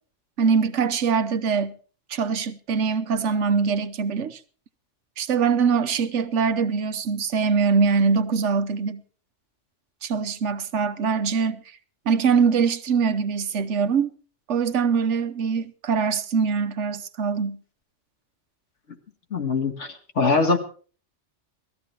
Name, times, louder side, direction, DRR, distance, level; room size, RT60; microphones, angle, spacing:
voice 1, 0.4-1.8 2.1-4.4 5.2-9.0 10.0-11.6 12.1-14.1 14.5-17.6, right 5 dB, 75° right, 1.2 m, -23 dB
voice 2, 19.3-20.6, left 4 dB, 80° left, 2.3 m, -22 dB
18.0 x 13.5 x 4.5 m
omnidirectional pair, 1.2 m